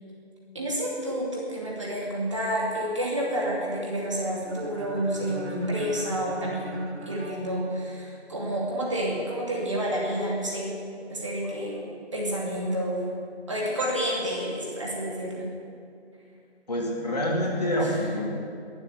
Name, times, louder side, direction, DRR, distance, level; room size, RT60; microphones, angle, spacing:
voice 1, 0.5-6.8 7.1-10.7 11.1-13.0 13.5-15.5 17.8-18.0, equal, 30° right, -4 dB, 2.6 m, -29 dB
sound 1, 4.4-8.3, right 3 dB, 85° right, 1.7 m, -41 dB
voice 2, 16.7-18.2, left 1 dB, 35° left, -2 dB, 2.6 m, -26 dB
20.5 x 8.1 x 8.1 m, 2.5 s
figure-of-eight pair, 175°, 33 cm